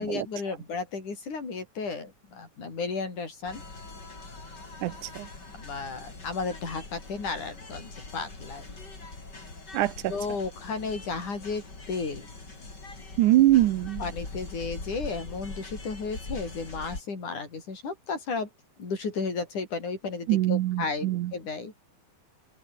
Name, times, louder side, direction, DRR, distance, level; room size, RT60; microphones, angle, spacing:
voice 1, 0.0-3.6 5.6-8.6 10.1-12.3 14.0-18.5 18.8-21.7, left 4 dB, 90° left, 7.5 m, -33 dB
sound 1, 3.4-17.0, left 3 dB, 35° left, 5.5 m, -42 dB
voice 2, 4.8-5.3 9.7-10.1 13.2-14.1 20.3-21.3, right 15 dB, 90° right, 2.5 m, -23 dB
omnidirectional pair, 3.4 m